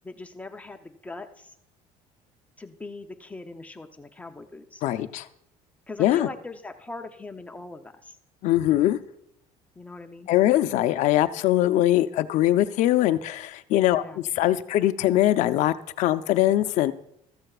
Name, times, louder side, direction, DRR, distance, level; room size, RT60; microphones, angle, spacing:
voice 1, 0.0-1.6 2.6-4.8 5.9-8.2 9.8-10.3 14.0-14.2, left 3 dB, 10° left, 6 dB, 0.7 m, -41 dB
voice 2, 4.8-5.3 6.0-6.3 8.4-9.0 10.3-16.9, left 14 dB, 60° left, 10 dB, 0.7 m, -22 dB
14.5 x 14.0 x 2.4 m, 0.77 s
cardioid pair, 160°, 14 cm